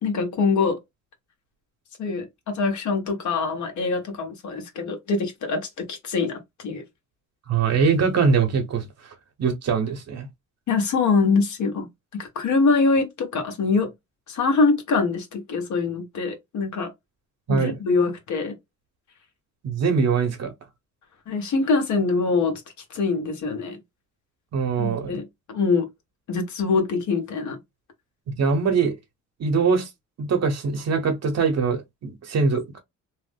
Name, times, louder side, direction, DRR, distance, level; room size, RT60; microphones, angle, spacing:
voice 1, 0.0-0.8 2.0-6.8 10.7-13.9 14.3-16.9 17.5-18.6 21.3-22.6 22.9-23.8 24.8-25.9 26.3-27.6, left 4 dB, 70° left, 1.3 m, -24 dB
voice 2, 7.5-9.1 9.4-10.3 17.5-17.8 19.6-20.5 24.5-25.1 28.4-28.9 29.4-29.9 30.2-32.8, right 5 dB, 60° right, 1.0 m, -22 dB
3.0 x 2.0 x 3.4 m
cardioid pair, 90°, 30 cm